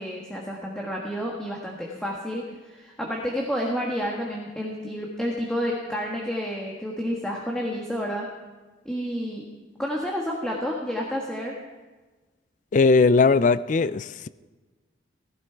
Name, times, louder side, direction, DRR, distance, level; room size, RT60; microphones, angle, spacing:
voice 1, 0.0-8.3 8.8-9.4 9.8-11.5, equal, 5° left, 1.4 m, -30 dB
voice 2, 12.7-14.3, left 4 dB, 40° left, 0.4 m, -19 dB
16.5 x 15.5 x 4.6 m
head